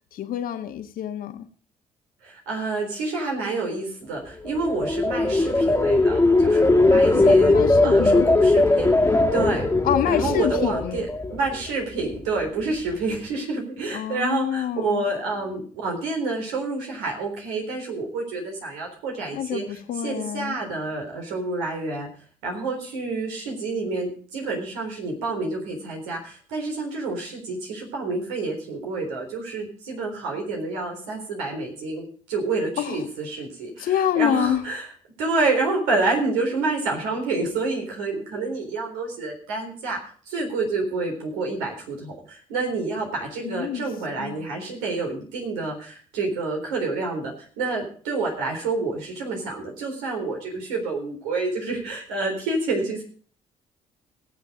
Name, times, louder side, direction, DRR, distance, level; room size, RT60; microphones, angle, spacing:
voice 1, 0.1-1.5 7.1-8.3 9.8-11.0 13.9-15.0 19.3-20.6 32.8-33.0 33.8-34.6 43.4-43.8 44.2-44.4, left 10 dB, 60° left, 1.5 m, -27 dB
voice 2, 2.2-7.6 7.8-8.9 9.3-9.7 10.0-19.6 20.0-22.1 22.4-34.9 35.2-53.0, right 3 dB, 75° right, 3.9 m, -28 dB
sound 1, 4.4-11.6 12.0-12.4, left 2 dB, 15° left, 1.9 m, -19 dB
18.0 x 8.0 x 5.0 m
hypercardioid pair, 45°, 17 cm